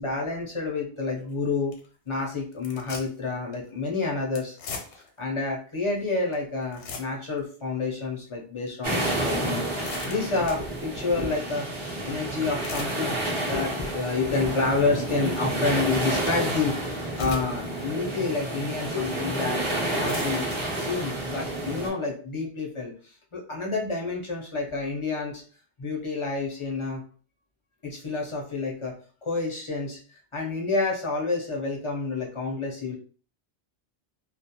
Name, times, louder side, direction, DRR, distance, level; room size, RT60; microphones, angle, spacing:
voice 1, 0.0-1.8 2.1-4.6 4.9-19.6 19.9-20.5 20.8-25.4 25.8-27.0 27.8-28.9 29.2-30.0 30.3-33.0, left 3 dB, 40° left, -1 dB, 0.4 m, -29 dB
sound 1, 1.2-1.3 1.7-1.9 2.5-3.3 3.5-3.7 4.3-5.2 5.8-5.9 6.3-6.4 6.6-7.4 7.9-8.0 8.7-8.8 9.4-10.7 12.3-13.0 13.5-13.8 14.3-14.4 15.9-16.0 16.3-16.4 17.1-17.7 18.2-18.3 19.1-19.2 19.8-20.6, left 5 dB, 80° left, 0.9 m, -40 dB
sound 2, 8.8-21.9, right 1 dB, 35° right, 0.6 m, -30 dB
2.3 x 2.0 x 2.7 m, 0.41 s
omnidirectional pair, 1.2 m